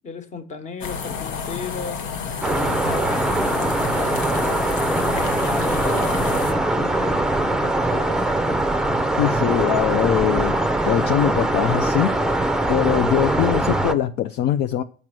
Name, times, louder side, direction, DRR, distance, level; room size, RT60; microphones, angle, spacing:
voice 1, 0.0-2.1 2.5-8.4, left 4 dB, 40° left, 1.2 m, -35 dB
sound 1, 0.8-6.5, left 6 dB, 80° left, 1.0 m, -30 dB
sound 2, 2.4-13.9, right 1 dB, 5° right, 0.5 m, -22 dB
voice 2, 9.2-10.6 10.8-12.2 12.7-14.8, left 11 dB, 65° left, 0.5 m, -22 dB
7.5 x 5.4 x 6.1 m
cardioid pair, 110°, 19 cm